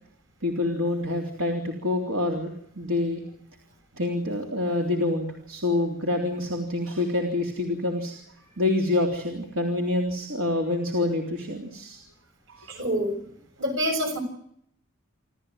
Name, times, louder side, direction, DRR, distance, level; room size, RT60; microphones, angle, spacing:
voice 1, 0.4-3.2 3.9-8.1 8.6-12.0 12.5-12.7, left 2 dB, 75° right, 2 dB, 3.6 m, -27 dB
voice 2, 12.7-13.2 13.6-14.2, equal, 60° right, 7 dB, 6.9 m, -26 dB
28.0 x 13.5 x 9.5 m, 0.71 s
head